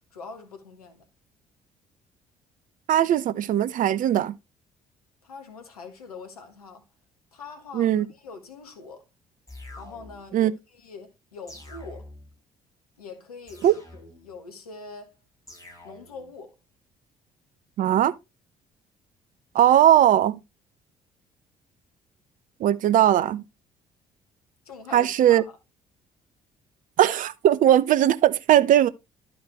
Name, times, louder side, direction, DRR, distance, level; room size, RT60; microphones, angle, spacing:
voice 1, 0.1-1.0 5.2-6.8 7.3-9.0 9.8-12.1 13.0-15.2 15.8-16.5 24.6-25.6, left 4 dB, 80° left, 1.2 m, -43 dB
voice 2, 2.9-4.3 7.7-8.1 10.3-10.5 13.6-13.7 17.8-18.1 19.5-20.4 22.6-23.4 24.9-25.4 27.0-28.9, right 11 dB, 45° right, 0.6 m, -19 dB
sound 1, 9.5-10.4 11.5-12.4 13.5-14.4 15.5-16.4, left 2 dB, 15° left, 5.2 m, -45 dB
12.0 x 5.0 x 3.1 m
figure-of-eight pair, 50°, 19 cm